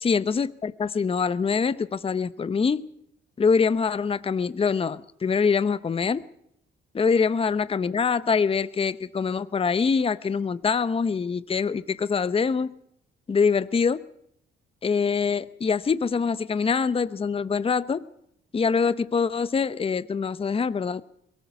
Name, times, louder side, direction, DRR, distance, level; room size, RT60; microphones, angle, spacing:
voice 1, 0.0-2.9 3.4-6.2 6.9-12.7 13.3-14.0 14.8-18.1 18.5-21.0, left 5 dB, 30° left, 15 dB, 0.8 m, -24 dB
22.0 x 18.0 x 6.9 m, 0.74 s
cardioid pair, 90°, 20 cm